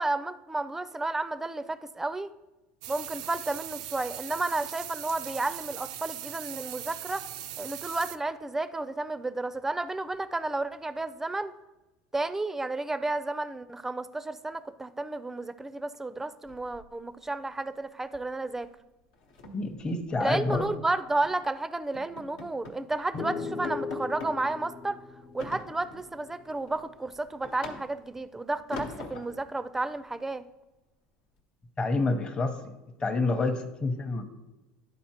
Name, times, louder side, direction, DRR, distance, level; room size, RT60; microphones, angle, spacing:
voice 1, 0.0-2.3 2.9-7.2 7.6-11.5 12.1-18.7 20.2-25.0 25.3-30.5, right 2 dB, 10° right, 13 dB, 0.4 m, -32 dB
sound 1, 2.8-8.2, right 12 dB, 90° right, 0.3 m, -40 dB
sound 2, 16.5-17.3 17.6-17.8 18.1-18.3 18.6-18.7 19.1-20.7 21.2-21.5 21.9-22.9 23.2-23.3 23.6-24.4 25.4-26.1 26.6-28.2 28.7-29.5, left 3 dB, 85° left, 1.0 m, -43 dB
voice 2, 19.5-20.7 31.8-32.7 33.0-34.3, left 3 dB, 25° left, 4 dB, 0.7 m, -28 dB
sound 3, 23.1-26.7, left 4 dB, 50° left, 1.0 m, -38 dB
11.0 x 4.2 x 2.9 m, 1.0 s
supercardioid pair, 100°, 3 cm